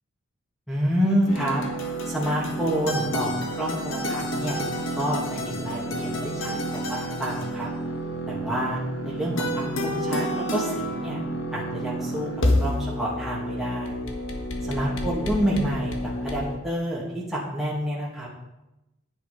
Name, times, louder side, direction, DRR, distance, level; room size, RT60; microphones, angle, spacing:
voice 1, 0.7-1.6 2.1-4.6 4.9-6.6 6.9-7.7 8.3-8.8 9.0-11.2 11.5-12.3 12.6-14.0 14.6-15.9 16.2-18.3, equal, ahead, -6 dB, 2.2 m, -28 dB
sound 1, 1.3-16.6, equal, 75° left, 1.6 m, -29 dB
10.0 x 9.4 x 5.0 m, 0.94 s
head